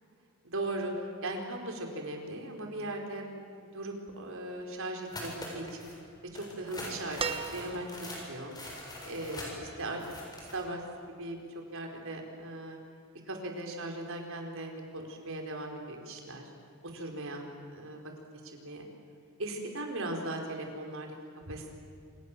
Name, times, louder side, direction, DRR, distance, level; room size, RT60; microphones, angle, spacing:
voice 1, 0.4-0.9 1.2-3.3 3.6-5.9 6.3-8.5 9.0-10.0 10.5-10.8 11.2-11.4 11.7-12.8 13.3-16.5 16.8-17.4 17.7-18.0 18.4-18.9 19.4-21.2 21.5-21.7, right 2 dB, 65° right, 2 dB, 4.9 m, -38 dB
sound 1, 5.1-6.0 6.3-10.6, left 1 dB, 20° left, 6.9 m, -43 dB
sound 2, 7.2-8.2 9.7-9.8, right 5 dB, 25° right, 1.4 m, -36 dB
28.5 x 27.5 x 7.7 m, 2.4 s
head